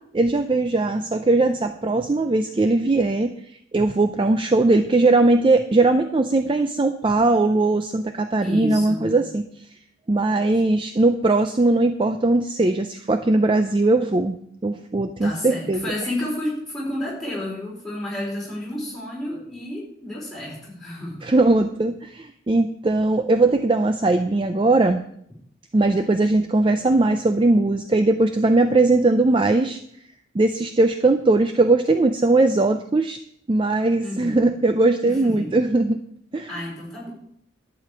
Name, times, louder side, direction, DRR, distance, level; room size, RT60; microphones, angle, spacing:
voice 1, 0.2-9.5 10.1-14.4 14.6-15.9 21.2-25.0 25.7-29.8 30.3-33.2 33.5-36.0 36.3-36.5, right 2 dB, 25° right, 8 dB, 0.4 m, -19 dB
voice 2, 8.4-9.1 15.2-21.3 34.0-34.5 35.0-35.6 36.5-37.1, left 1 dB, ahead, -7 dB, 4.5 m, -31 dB
11.5 x 5.0 x 8.5 m, 0.70 s
head